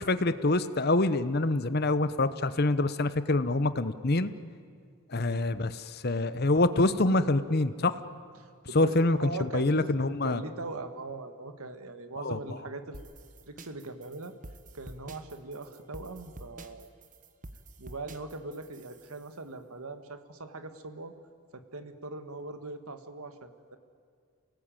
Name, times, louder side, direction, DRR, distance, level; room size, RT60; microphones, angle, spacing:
voice 1, 0.0-4.3 5.1-7.9 8.7-10.4 12.2-12.4, left 2 dB, 45° left, 13 dB, 0.9 m, -26 dB
voice 2, 8.4-9.9 10.2-13.0 13.5-14.3 14.7-16.9 17.8-21.1 21.5-23.8, right 2 dB, 80° right, 8 dB, 1.6 m, -41 dB
sound 1, 12.9-19.3, right 1 dB, 35° right, 1.1 m, -48 dB
28.5 x 18.5 x 9.0 m, 2.1 s
head